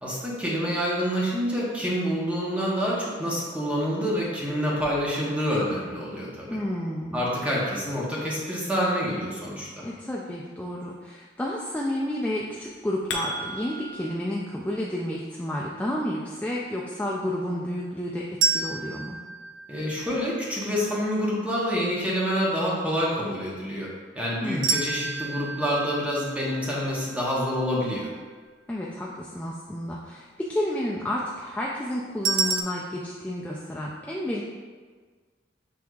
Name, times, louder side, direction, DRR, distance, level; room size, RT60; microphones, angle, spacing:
voice 1, 0.0-6.6 7.1-9.8 19.7-23.9 24.1-28.1, equal, 10° right, -6 dB, 1.0 m, -27 dB
voice 2, 6.5-7.3 9.8-18.2 18.5-19.2 24.4-24.8 28.7-34.4, left 1 dB, 10° left, -4 dB, 0.3 m, -31 dB
sound 1, 12.6-14.1, left 1 dB, 90° left, 0.5 m, -34 dB
sound 2, 18.4-20.5 24.6-27.7 32.3-32.6, right 4 dB, 85° right, 0.4 m, -29 dB
6.1 x 3.5 x 2.3 m, 1.5 s
head